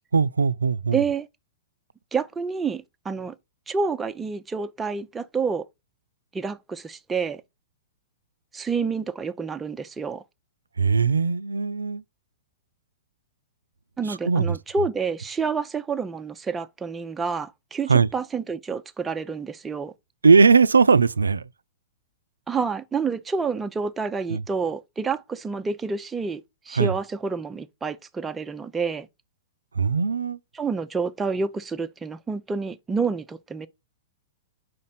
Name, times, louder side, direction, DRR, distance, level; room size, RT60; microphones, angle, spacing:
voice 1, 0.1-1.0 10.8-12.0 14.1-14.6 17.9-18.1 20.2-21.4 24.3-24.4 26.7-26.9 29.7-30.4, right 5 dB, 85° right, 0.4 m, -19 dB
voice 2, 0.9-1.3 2.1-3.4 3.7-5.7 6.3-7.4 8.5-10.2 14.0-19.9 22.5-29.1 30.5-33.7, right 5 dB, 15° right, 0.5 m, -28 dB
5.0 x 4.2 x 5.6 m
hypercardioid pair, 110°, 0 cm